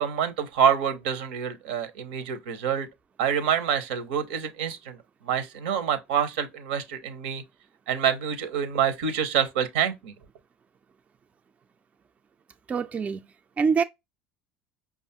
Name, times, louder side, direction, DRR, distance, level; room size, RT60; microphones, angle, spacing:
voice 1, 0.0-2.9 3.2-5.0 5.2-7.4 7.9-10.1, right 8 dB, 75° right, 0.7 m, -26 dB
voice 2, 12.7-13.2 13.6-13.8, right 5 dB, 30° right, 0.3 m, -24 dB
5.1 x 2.4 x 2.7 m
hypercardioid pair, 80°, 5 cm